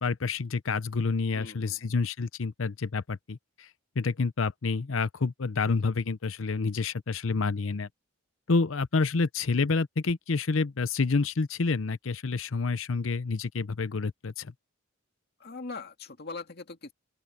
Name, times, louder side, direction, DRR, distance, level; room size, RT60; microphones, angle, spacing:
voice 1, 0.0-3.7 4.0-7.9 8.5-14.5, left 4 dB, 70° left, 0.7 m, -28 dB
voice 2, 1.3-1.8 15.4-16.9, left 3 dB, 50° left, 2.0 m, -41 dB
open air
head